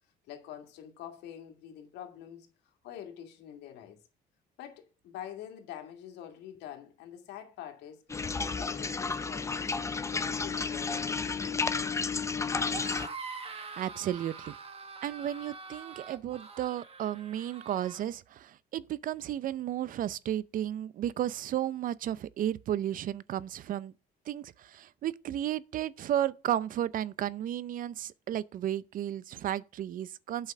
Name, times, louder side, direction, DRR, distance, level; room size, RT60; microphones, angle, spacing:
voice 1, 0.3-2.5 2.8-4.0 4.6-8.0 8.4-9.8 10.1-13.1, left 10 dB, 85° left, 2.1 m, -46 dB
sound 1, 8.1-13.1, left 4 dB, 15° left, 0.7 m, -32 dB
sound 2, 12.6-18.0, right 4 dB, 35° right, 1.7 m, -44 dB
voice 2, 13.8-14.5 15.0-23.9 24.3-30.5, right 11 dB, 55° right, 0.5 m, -33 dB
8.3 x 5.6 x 6.5 m
cardioid pair, 110°, 17 cm